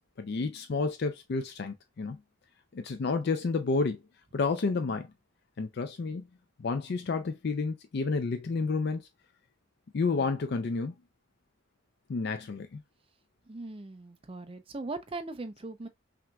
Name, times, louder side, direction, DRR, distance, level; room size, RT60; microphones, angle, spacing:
voice 1, 0.2-2.2 2.7-4.0 4.3-5.1 5.6-6.3 6.6-9.0 9.9-10.9 12.1-12.8, left 4 dB, 50° left, 0.4 m, -30 dB
voice 2, 13.5-15.9, right 2 dB, 25° right, 0.4 m, -39 dB
5.8 x 2.6 x 2.2 m
head